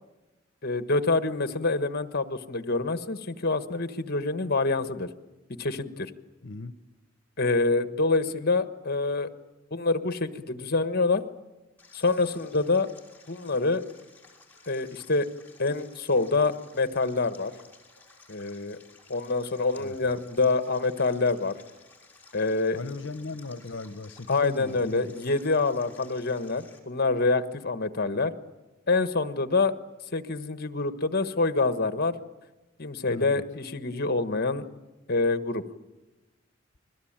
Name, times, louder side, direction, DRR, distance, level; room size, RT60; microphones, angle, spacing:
voice 1, 0.6-5.1 5.6-6.1 7.4-9.3 9.7-11.2 11.9-12.9 13.3-13.8 14.7-15.3 15.6-17.5 18.3-18.8 19.1-21.6 22.3-22.8 24.3-28.3 28.9-29.7 30.1-32.2 32.8-34.6 35.1-35.6, left 3 dB, 50° left, 10 dB, 1.4 m, -26 dB
voice 2, 6.4-6.7 19.8-20.0 22.7-25.1 33.1-33.4, left 3 dB, 65° left, 13 dB, 1.1 m, -38 dB
Stream, 11.8-26.8, left 3 dB, 10° left, 5.8 m, -55 dB
29.5 x 22.0 x 8.9 m, 1.1 s
head